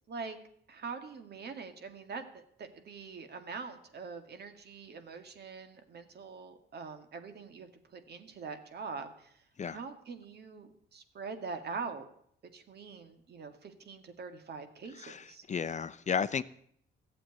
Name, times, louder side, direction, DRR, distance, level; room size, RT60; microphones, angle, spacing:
voice 1, 0.7-12.1 12.5-15.4, right 5 dB, 55° right, 8 dB, 2.1 m, -44 dB
voice 2, 15.0-16.4, left 6 dB, 35° left, 14 dB, 0.7 m, -33 dB
15.0 x 7.7 x 9.6 m, 0.65 s
cardioid pair, 90°, 20 cm